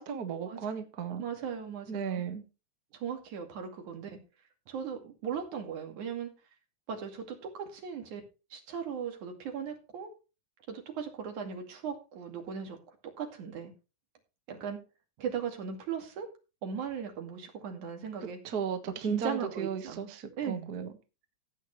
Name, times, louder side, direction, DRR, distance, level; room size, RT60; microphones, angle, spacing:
voice 1, 0.0-1.2 1.9-2.4 18.4-20.9, right 7 dB, 40° right, 7 dB, 1.5 m, -35 dB
voice 2, 1.2-2.2 2.9-4.2 4.7-6.3 6.9-8.2 8.5-10.1 10.7-13.7 14.5-14.8 15.2-16.3 16.6-18.4 18.9-20.7, right 7 dB, 85° right, 4 dB, 3.7 m, -38 dB
15.5 x 8.9 x 3.2 m, 0.30 s
omnidirectional pair, 3.3 m